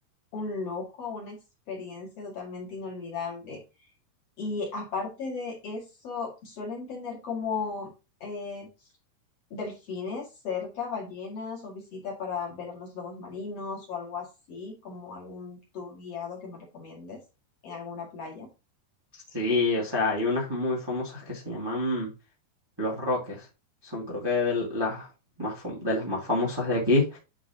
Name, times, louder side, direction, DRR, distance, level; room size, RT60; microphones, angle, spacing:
voice 1, 0.3-1.4 1.7-3.6 4.4-7.9 8.2-8.7 9.5-17.2 17.6-18.5, left 4 dB, 45° left, -2 dB, 2.4 m, -36 dB
voice 2, 19.3-22.1 22.8-23.4 23.9-25.1 25.4-27.2, left 2 dB, 40° right, -5 dB, 0.3 m, -27 dB
10.5 x 3.9 x 2.9 m, 0.28 s
omnidirectional pair, 4.9 m